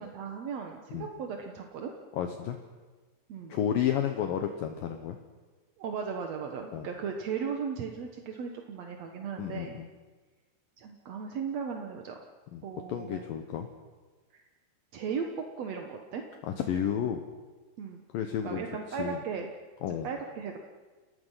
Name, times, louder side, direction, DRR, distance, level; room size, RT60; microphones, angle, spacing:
voice 1, 0.0-1.9 3.3-3.6 5.8-9.8 10.8-12.2 12.6-13.2 14.3-14.4 14.9-16.2 17.8-18.0 18.4-19.5 20.0-20.6, right 6 dB, 60° right, 3 dB, 1.8 m, -36 dB
voice 2, 2.1-2.6 3.5-5.2 6.7-6.9 9.4-9.9 12.5-12.6 12.9-13.7 16.4-17.2 18.1-19.2 19.8-20.1, left 9 dB, 65° left, 5 dB, 2.6 m, -31 dB
29.5 x 19.0 x 5.8 m, 1.3 s
omnidirectional pair, 4.7 m